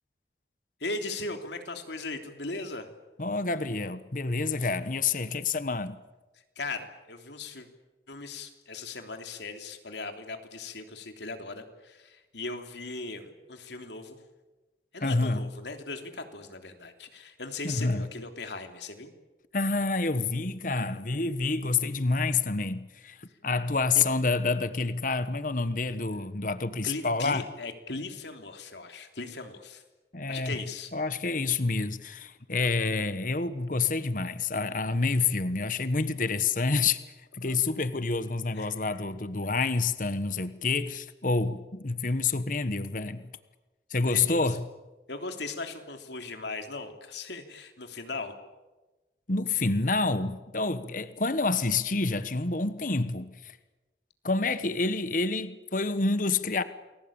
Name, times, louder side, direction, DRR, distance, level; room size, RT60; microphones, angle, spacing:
voice 1, 0.8-2.9 6.5-7.7 8.1-14.2 14.9-19.1 23.9-24.0 26.8-29.8 30.3-30.9 37.4-37.5 38.5-38.7 44.0-44.6 45.1-48.4, left 3 dB, 80° left, 3.3 m, -38 dB
voice 2, 3.2-6.0 15.0-15.5 17.6-18.1 19.5-27.4 30.1-30.6 30.9-37.0 37.3-43.3 43.9-44.7 49.3-53.5 54.2-56.6, left 3 dB, 45° left, 1.2 m, -28 dB
29.5 x 21.0 x 8.9 m
head